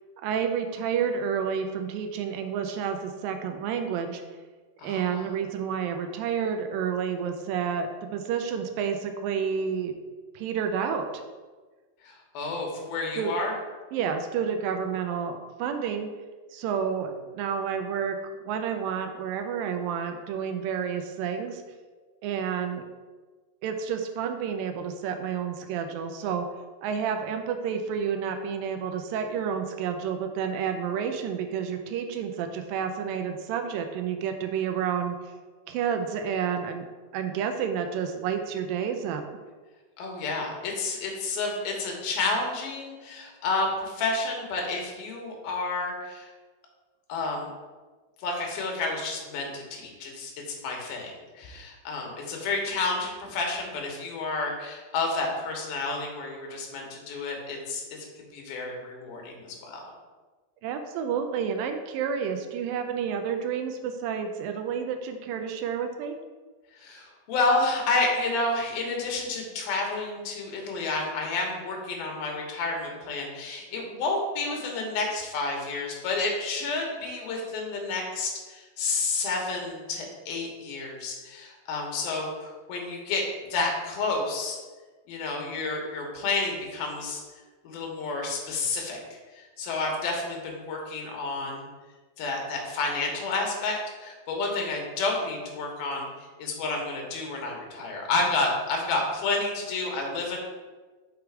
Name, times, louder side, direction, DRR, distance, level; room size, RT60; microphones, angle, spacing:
voice 1, 0.2-4.2 4.8-9.9 10.4-11.2 13.2-13.3 13.9-16.1 16.5-18.2 18.5-21.6 22.2-22.9 23.6-26.5 26.8-35.3 35.7-36.9 37.1-39.3 60.6-66.1, right 7 dB, 80° right, 6 dB, 2.1 m, -30 dB
voice 2, 4.8-5.2 12.0-13.5 40.0-46.3 47.1-47.5 48.2-59.8 66.8-83.2 83.5-84.6 85.1-87.2 87.6-89.0 89.3-91.7 92.2-100.4, left 3 dB, 80° left, 0 dB, 3.0 m, -30 dB
6.1 x 4.8 x 4.6 m, 1.3 s
omnidirectional pair, 4.3 m